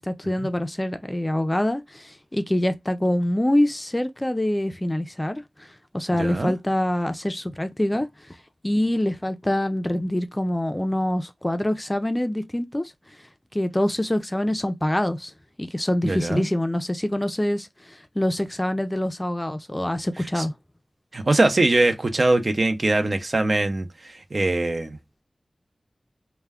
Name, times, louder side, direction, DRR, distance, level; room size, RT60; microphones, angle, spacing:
voice 1, 0.0-8.4 8.6-13.2 13.5-15.3 15.6-20.5, left 1 dB, 20° left, 0.4 m, -25 dB
voice 2, 6.2-6.5 16.0-16.4 20.4-20.5 21.1-25.0, right 2 dB, 55° right, 0.6 m, -22 dB
2.2 x 2.1 x 3.4 m
wide cardioid pair, 50°, 0 cm